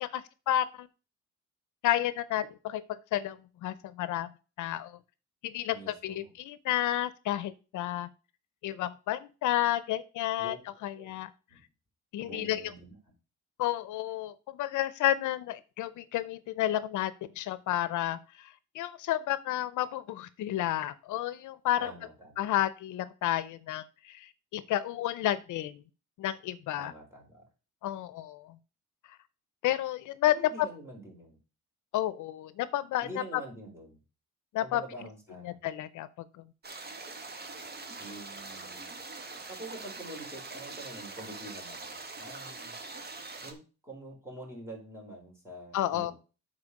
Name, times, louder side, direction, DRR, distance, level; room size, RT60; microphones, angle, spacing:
voice 1, 0.0-0.9 1.8-2.8 3.1-4.3 4.6-5.0 5.4-8.1 8.6-10.6 10.8-11.3 12.1-12.6 13.6-21.9 22.4-25.8 26.2-26.9 27.8-28.6 29.6-30.7 31.9-33.1 34.5-34.8 35.4-36.1 45.7-46.1, left 13 dB, 80° left, 16 dB, 0.7 m, -31 dB
voice 2, 5.7-6.3 10.4-10.6 11.0-11.2 11.5-11.6 12.2-12.9 21.8-22.5 26.8-27.4 30.2-31.4 33.0-34.0 34.6-35.6 38.0-39.0 39.5-42.7 43.4-46.1, right 1 dB, 10° right, -2 dB, 4.7 m, -46 dB
sound 1, 36.6-43.5, right 3 dB, 30° right, 1.6 m, -43 dB
9.7 x 4.4 x 4.9 m, 0.34 s
cardioid pair, 90°, 30 cm